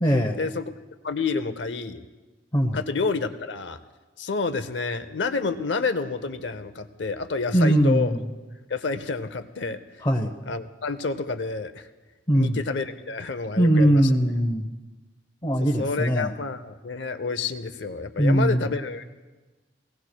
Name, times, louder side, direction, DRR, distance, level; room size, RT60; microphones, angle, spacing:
voice 1, 0.0-0.4 2.5-2.8 7.5-8.2 10.0-10.3 12.3-12.6 13.6-14.7 15.4-16.3 18.2-18.7, equal, 25° left, 0 dB, 0.8 m, -21 dB
voice 2, 1.0-2.0 2.7-3.8 4.2-8.1 8.7-9.8 10.5-11.9 12.3-14.2 15.8-19.0, left 4 dB, 75° left, 11 dB, 0.7 m, -29 dB
23.5 x 17.5 x 2.2 m, 1.2 s
head